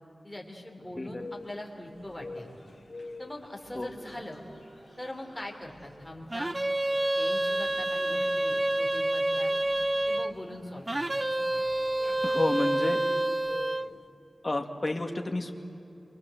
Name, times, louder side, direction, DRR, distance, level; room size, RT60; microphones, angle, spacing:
voice 1, 0.2-2.5 3.2-4.4 5.0-6.6 7.2-9.5 10.1-11.6, left 1 dB, 10° left, 1 dB, 3.5 m, -42 dB
sound 1, 1.2-14.0, left 3 dB, 60° left, 1.8 m, -49 dB
sound 2, 1.9-12.5, right 1 dB, 60° right, 5.4 m, -55 dB
sound 3, 6.3-10.3 10.9-13.9, right 1 dB, 25° right, 0.6 m, -28 dB
voice 2, 12.2-13.0 14.4-15.5, left 2 dB, 30° left, 3 dB, 2.1 m, -30 dB
27.5 x 24.0 x 7.9 m, 2.7 s
wide cardioid pair, 105°, 0 cm